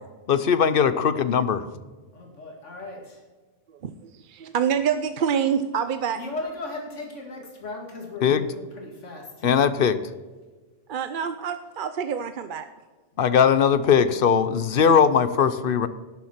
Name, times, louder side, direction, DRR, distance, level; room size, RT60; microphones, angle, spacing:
voice 1, 0.3-1.7 8.2-8.5 9.4-10.0 13.2-15.9, left 7 dB, 55° left, 13 dB, 0.8 m, -20 dB
voice 2, 2.1-3.2 6.2-9.5 13.2-13.6, left 2 dB, 85° left, 1 dB, 2.5 m, -37 dB
voice 3, 3.8-6.2 9.4-9.5 10.9-12.7, right 7 dB, 55° right, 10 dB, 0.7 m, -26 dB
12.0 x 7.1 x 5.8 m, 1.3 s
omnidirectional pair, 1.2 m